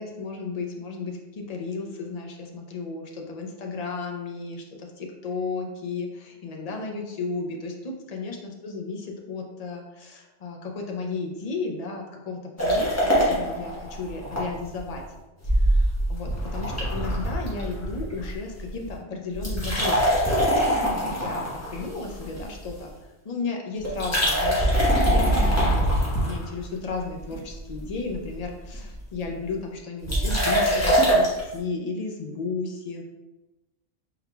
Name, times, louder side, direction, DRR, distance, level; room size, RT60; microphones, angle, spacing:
voice 1, 0.0-12.9 13.3-15.0 15.4-20.2 20.7-22.9 23.2-33.0, left 4 dB, 45° left, 1 dB, 0.6 m, -34 dB
sound 1, 12.6-14.4 14.8-14.9 15.4-18.3 18.6-18.9 19.3-22.7 23.8-26.8 27.3-27.8 28.1-28.2 28.4-28.5 28.7-29.0 30.1-31.4, equal, 15° left, 1.1 m, -23 dB
4.5 x 3.9 x 2.2 m, 1.0 s
omnidirectional pair, 1.1 m